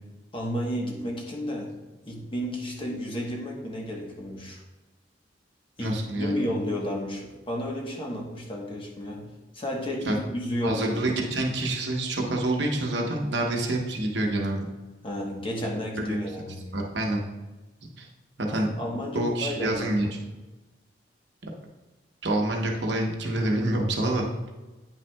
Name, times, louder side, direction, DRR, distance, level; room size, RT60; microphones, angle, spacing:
voice 1, 0.3-1.8 2.1-4.6 5.8-11.0 15.0-16.7 18.5-20.1, equal, 30° left, -1 dB, 1.1 m, -32 dB
voice 2, 5.8-6.4 10.0-10.2 10.6-14.7 16.1-16.3 16.7-17.2 18.0-18.1 18.4-18.7 19.1-20.1 22.2-24.2, right 1 dB, 65° right, 0 dB, 1.0 m, -27 dB
9.2 x 5.7 x 2.3 m, 1.2 s
head